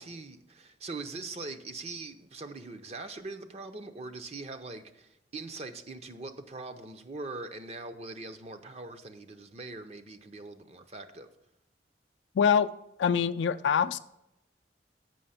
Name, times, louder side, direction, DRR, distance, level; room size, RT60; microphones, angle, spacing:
voice 1, 0.0-11.3, right 3 dB, 35° right, 0.6 m, -42 dB
voice 2, 12.3-12.7 13.0-14.0, left 7 dB, 85° left, 0.3 m, -24 dB
7.7 x 5.9 x 5.6 m
head